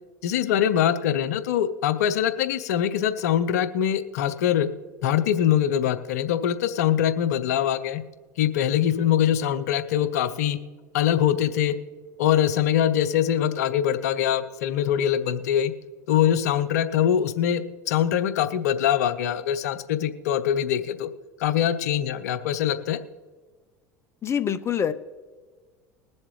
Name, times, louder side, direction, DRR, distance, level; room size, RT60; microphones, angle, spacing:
voice 1, 0.2-4.7 5.0-8.0 8.4-10.6 10.9-11.8 12.2-15.7 16.1-21.1 21.4-23.0, left 10 dB, 75° left, 12 dB, 0.7 m, -23 dB
voice 2, 24.2-24.9, left 8 dB, 30° left, 12 dB, 0.7 m, -25 dB
21.0 x 7.3 x 3.2 m, 1.4 s
hypercardioid pair, 80°, 9 cm